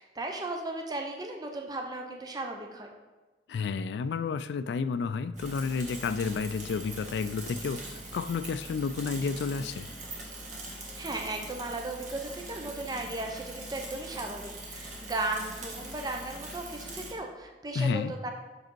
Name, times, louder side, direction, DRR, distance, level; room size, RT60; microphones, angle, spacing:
voice 1, 0.0-2.9 11.0-18.3, right 2 dB, 20° right, 0.6 m, -36 dB
voice 2, 3.5-9.9 17.7-18.1, left 5 dB, 75° left, 0.3 m, -31 dB
Bicycle / Mechanisms, 5.3-17.1, right 1 dB, 45° right, 1.5 m, -42 dB
6.1 x 4.9 x 4.6 m
head